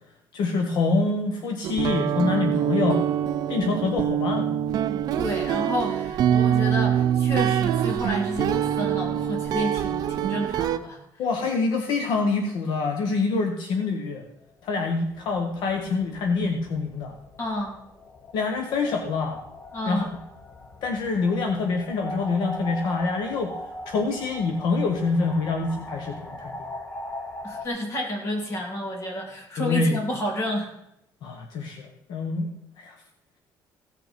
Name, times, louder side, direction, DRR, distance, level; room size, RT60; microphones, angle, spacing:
voice 1, 0.3-3.0 3.5-4.5 11.2-14.2 14.6-17.1 18.3-19.4 19.9-20.0 20.8-23.6 23.9-26.7 29.6-30.0 31.2-32.5 32.8-33.0, left 4 dB, 70° left, 4 dB, 1.3 m, -26 dB
sound 1, 1.6-10.8, right 10 dB, 55° right, 0.6 m, -24 dB
voice 2, 5.1-11.0 17.4-17.8 19.7-20.1 27.4-30.7, left 1 dB, 35° left, 0 dB, 3.1 m, -30 dB
sound 2, 14.4-27.7, left 1 dB, 20° left, 0.9 m, -40 dB
16.0 x 6.5 x 5.2 m, 0.80 s
cardioid pair, 155°, 8 cm